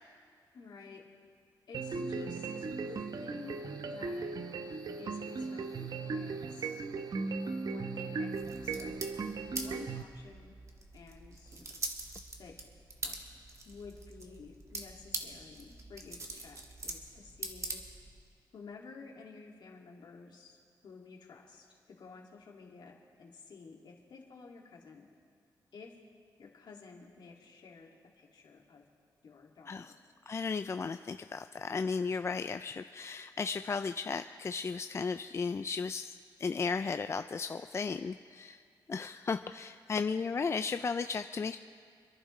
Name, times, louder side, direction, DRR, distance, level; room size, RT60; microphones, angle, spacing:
voice 1, 0.5-1.0 1.7-4.4 5.0-6.8 7.6-9.0 9.5-10.6 10.9-11.6 12.4-12.6 13.0-13.3 13.6-17.8 18.5-20.6 20.8-25.1 25.7-26.0 26.4-28.8 29.2-30.0, left 4 dB, 65° left, -1 dB, 2.3 m, -52 dB
sound 1, 1.7-10.0, right 4 dB, 55° right, 0.9 m, -37 dB
sound 2, 8.3-18.3, right 2 dB, 40° right, 1.8 m, -44 dB
voice 2, 30.3-38.6 38.9-41.6, left 5 dB, 35° left, 9 dB, 0.4 m, -35 dB
27.5 x 11.0 x 3.2 m, 2.2 s
cardioid pair, 80°, 8 cm